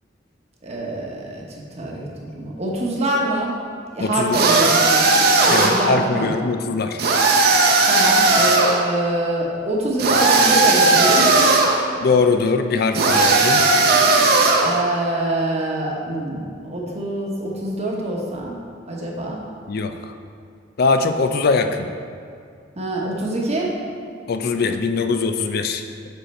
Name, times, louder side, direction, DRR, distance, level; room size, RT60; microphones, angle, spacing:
voice 1, 0.6-1.4 1.8-3.5 3.9-5.1 5.4-6.3 7.8-11.5 14.6-18.5 18.9-19.4 22.8-23.7, right 1 dB, 35° right, -2 dB, 1.1 m, -25 dB
voice 2, 4.0-4.4 5.5-7.0 12.0-13.7 19.7-20.1 20.8-21.9 24.3-25.8, left 4 dB, 55° left, 7 dB, 0.4 m, -21 dB
sound 1, 4.3-5.9 7.0-8.8 10.0-11.8 12.9-14.8, right 3 dB, 55° right, 0.7 m, -16 dB
6.4 x 5.3 x 4.2 m, 2.3 s
head